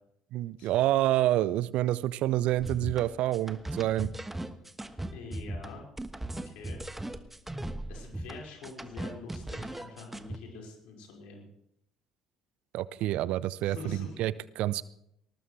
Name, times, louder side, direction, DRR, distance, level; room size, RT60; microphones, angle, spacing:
voice 1, 0.3-4.1 12.7-14.9, right 14 dB, 60° right, 19 dB, 0.5 m, -28 dB
sound 1, 2.6-10.4, right 1 dB, 10° right, 1.3 m, -38 dB
voice 2, 5.1-5.8 6.3-6.8 7.9-11.5 13.6-14.2, left 4 dB, 65° left, 0 dB, 5.2 m, -45 dB
19.5 x 19.5 x 3.3 m, 0.76 s
figure-of-eight pair, 55°, 2 cm